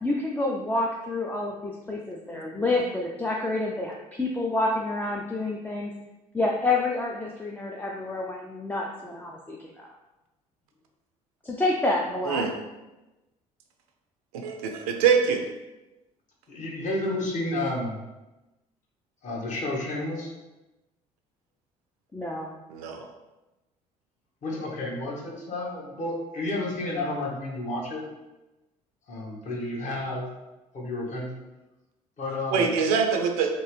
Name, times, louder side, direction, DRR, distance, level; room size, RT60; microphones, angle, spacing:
voice 1, 0.0-5.9 6.3-9.9 11.4-12.4 22.1-22.5, left 2 dB, 10° left, -1 dB, 0.4 m, -28 dB
voice 2, 14.3-15.4 22.7-23.0 32.5-33.6, right 6 dB, 70° right, 4 dB, 0.4 m, -24 dB
voice 3, 16.5-18.0 19.2-20.3 24.4-28.0 29.1-30.3 30.7-31.3 32.2-32.7, left 2 dB, 40° left, -3 dB, 1.0 m, -31 dB
3.0 x 2.5 x 3.1 m, 1.0 s
figure-of-eight pair, 55°, 20 cm